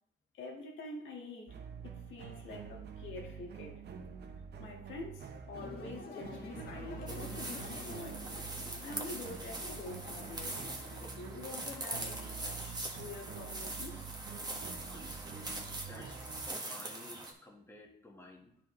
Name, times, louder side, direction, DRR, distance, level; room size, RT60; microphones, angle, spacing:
voice 1, 0.3-1.6 1.8-3.8 4.6-7.3 7.6-8.3 8.8-10.7 11.0-14.1, left 3 dB, 75° left, 1.7 m, -47 dB
sound 1, 1.5-16.5, right 7 dB, 55° right, 1.0 m, -47 dB
sound 2, 5.5-11.0, left 3 dB, 50° left, 1.5 m, -48 dB
sound 3, 7.1-17.3, right 2 dB, 20° right, 1.5 m, -42 dB
voice 2, 14.9-18.6, left 1 dB, 10° left, 1.6 m, -54 dB
9.9 x 5.0 x 3.2 m
cardioid pair, 90°, 20 cm